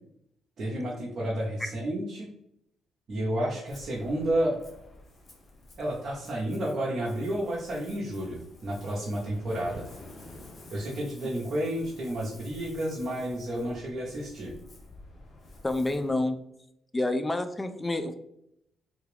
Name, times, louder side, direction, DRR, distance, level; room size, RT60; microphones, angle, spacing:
voice 1, 0.6-2.3 3.1-4.6 5.8-9.8 10.7-14.5, right 1 dB, 55° right, -5 dB, 0.8 m, -31 dB
Ocean, 3.7-16.2, left 2 dB, 40° left, 0.8 m, -50 dB
voice 2, 15.6-16.4 16.9-18.1, left 2 dB, 15° left, 9 dB, 0.3 m, -28 dB
3.4 x 2.3 x 3.3 m, 0.76 s
cardioid pair, 90°, 0 cm